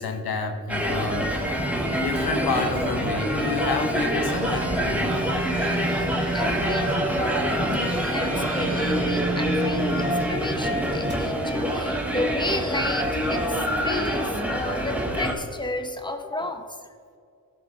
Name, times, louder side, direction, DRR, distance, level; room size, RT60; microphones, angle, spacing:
voice 1, 0.0-1.5 2.0-5.1 7.7-7.9, left 4 dB, 75° left, 4 dB, 1.3 m, -29 dB
sound 1, 0.7-15.3, equal, 5° right, 1.7 m, -26 dB
sound 2, 1.1-11.1, equal, 30° right, 2.0 m, -36 dB
sound 3, 4.3-7.1 7.5-10.3, right 2 dB, 45° right, 1.5 m, -32 dB
voice 2, 6.3-16.8, left 1 dB, 10° left, 6 dB, 1.0 m, -32 dB
15.5 x 5.5 x 3.5 m, 2.2 s
cardioid pair, 75°, 37 cm